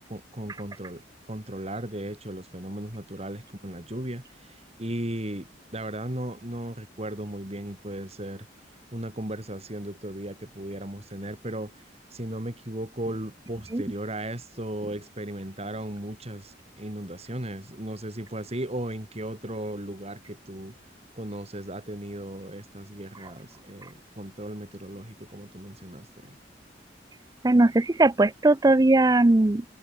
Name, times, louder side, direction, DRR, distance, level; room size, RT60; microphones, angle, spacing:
voice 1, 0.0-8.5 8.9-20.7 21.1-26.4, right 1 dB, 35° right, 4.2 m, -36 dB
voice 2, 27.4-29.6, right 2 dB, 20° right, 0.5 m, -19 dB
head